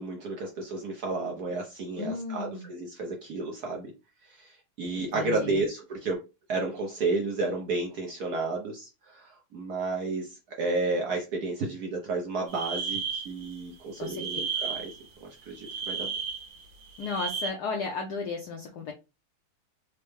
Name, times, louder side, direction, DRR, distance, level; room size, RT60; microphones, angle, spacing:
voice 1, 0.0-3.9 4.2-6.2 6.5-14.9 15.2-16.1, right 3 dB, 65° right, 0 dB, 0.9 m, -32 dB
voice 2, 2.0-2.7 5.0-5.6 14.0-14.3 17.0-18.9, left 4 dB, 75° left, 2 dB, 0.9 m, -34 dB
sound 1, 12.5-13.6 14.0-15.1 15.5-17.5, right 6 dB, 90° right, 1.6 m, -34 dB
4.4 x 2.0 x 3.2 m, 0.28 s
omnidirectional pair, 2.3 m